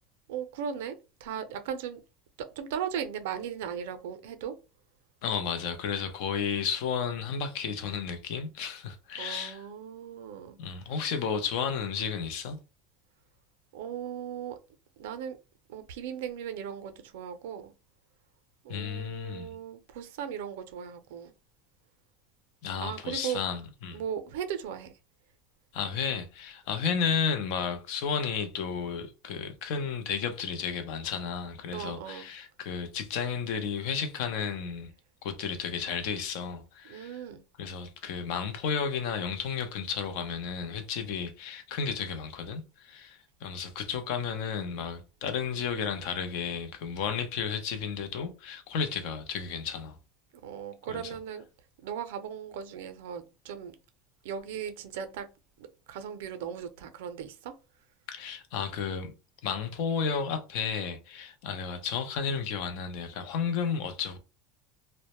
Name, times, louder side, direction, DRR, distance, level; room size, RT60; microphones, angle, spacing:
voice 1, 0.3-2.0 2.4-4.6 9.2-10.6 13.7-14.6 15.0-15.4 15.7-17.7 18.6-21.3 22.8-23.4 23.9-24.9 31.7-32.3 36.8-37.4 50.4-51.4 51.8-53.8 54.2-55.3 55.9-57.5, right 8 dB, 85° right, 0.4 m, -37 dB
voice 2, 5.2-9.6 10.6-12.6 18.7-19.6 22.6-24.0 25.7-34.9 35.2-37.2 37.6-50.0 50.9-51.1 58.1-59.1 59.4-64.2, left 6 dB, 65° left, 0.5 m, -33 dB
2.1 x 2.0 x 2.9 m
supercardioid pair, 145°, 0 cm